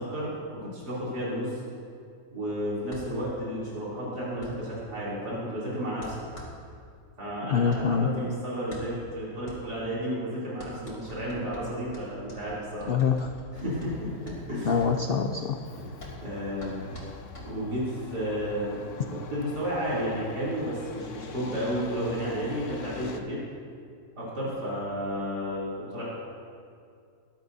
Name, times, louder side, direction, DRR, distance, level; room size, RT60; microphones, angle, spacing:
voice 1, 0.0-1.6 2.3-6.2 7.2-12.9 13.5-14.8 15.8-16.9 17.4-23.4 24.1-26.0, equal, 80° right, -8 dB, 3.7 m, -32 dB
sound 1, 2.9-18.0, left 1 dB, 45° left, 3.3 m, -47 dB
voice 2, 7.4-8.2 12.9-13.3 14.7-15.6, left 6 dB, 85° left, 5 dB, 0.5 m, -25 dB
Truck, 13.5-23.2, left 6 dB, 60° left, 1.0 m, -44 dB
20.0 x 12.0 x 2.7 m, 2.3 s
omnidirectional pair, 1.7 m